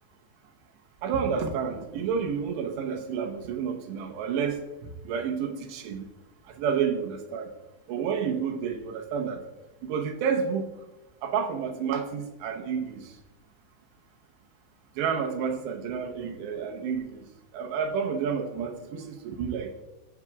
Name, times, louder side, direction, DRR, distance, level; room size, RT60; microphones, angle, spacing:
voice 1, 1.0-6.0 6.6-7.5 7.9-9.4 9.8-10.7 11.2-13.1 15.0-17.2 17.5-19.8, right 6 dB, 85° right, 3 dB, 3.1 m, -30 dB
22.0 x 7.9 x 2.3 m, 1.1 s
omnidirectional pair, 4.9 m